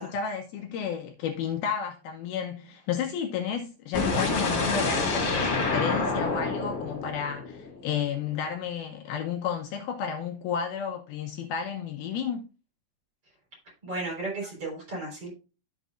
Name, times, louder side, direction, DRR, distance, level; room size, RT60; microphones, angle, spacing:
voice 1, 0.0-12.4, left 7 dB, 75° left, 2.5 m, -32 dB
sound 1, 3.9-7.9, left 3 dB, 45° left, 2.4 m, -27 dB
voice 2, 13.8-15.3, right 2 dB, 35° right, 4.6 m, -34 dB
13.5 x 5.2 x 2.4 m
omnidirectional pair, 4.7 m